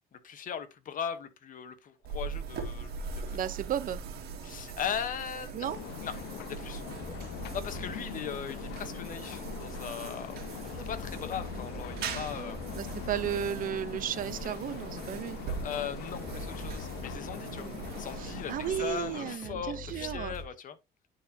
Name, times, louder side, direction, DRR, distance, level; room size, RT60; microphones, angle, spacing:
voice 1, 0.1-3.4 4.4-5.7 6.0-6.1 6.5-6.8 7.5-10.4 10.7-12.6 15.5-17.7 18.0-18.5 18.8-20.7, left 8 dB, 50° left, 1.0 m, -38 dB
sound 1, 2.0-19.4, right 5 dB, 70° right, 1.8 m, -41 dB
voice 2, 3.3-4.0 5.5-5.8 7.8-8.3 12.7-15.4 17.6-17.8 18.2-20.3, right 10 dB, 55° right, 0.7 m, -34 dB
sound 2, 5.5-8.9 9.7-9.8 10.2-18.5 19.0-19.1 19.4-20.4, left 3 dB, ahead, 2.3 m, -45 dB
sound 3, 5.6-19.4, left 15 dB, 70° left, 0.4 m, -43 dB
10.0 x 4.2 x 2.8 m
cardioid pair, 110°, 17 cm